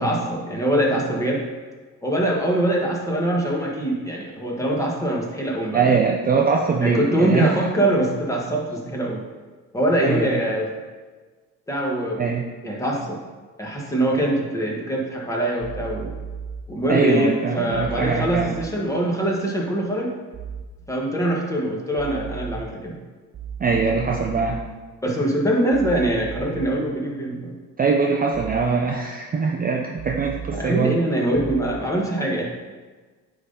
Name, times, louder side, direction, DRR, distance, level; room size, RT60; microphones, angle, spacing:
voice 1, 0.0-1.4 2.0-6.0 6.8-9.2 9.7-10.7 11.7-12.3 12.6-13.2 13.6-16.1 16.7-20.1 20.9-23.0 25.0-27.5 30.5-32.4, right 1 dB, 10° left, -2 dB, 1.6 m, -23 dB
voice 2, 5.7-7.7 10.0-10.4 12.2-12.5 16.9-18.6 23.6-24.6 27.8-31.0, right 5 dB, 25° right, 0 dB, 0.6 m, -22 dB
sound 1, 15.6-16.6 17.7-18.6 20.3-20.6 22.0-22.6 23.3-24.6 25.7-26.6 28.3-28.6 30.0-30.6 31.3-31.7, right 7 dB, 45° right, 1.4 m, -35 dB
9.4 x 3.9 x 4.0 m, 1.4 s
cardioid pair, 115°, 34 cm